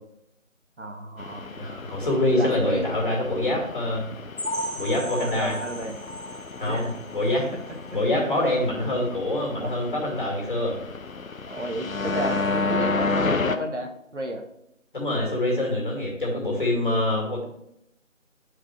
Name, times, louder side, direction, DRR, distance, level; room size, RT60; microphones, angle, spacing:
voice 1, 0.8-1.7 2.3-2.9 5.2-6.0 6.7-6.9 7.9-8.2 8.9-9.0 9.6-9.7 11.5-14.4, right 1 dB, 60° right, 4 dB, 1.2 m, -32 dB
sound 1, 1.2-13.6, left 4 dB, 85° left, 0.8 m, -32 dB
voice 2, 1.6-4.1 4.8-5.6 6.6-7.5 7.9-10.8 14.9-17.5, left 1 dB, 40° left, -2 dB, 2.6 m, -25 dB
sound 2, 4.4-8.0 8.4-8.5 8.9-9.0 9.5-9.6, equal, 5° left, 1.8 m, -35 dB
8.2 x 4.9 x 4.6 m, 0.77 s
figure-of-eight pair, 170°, 40 cm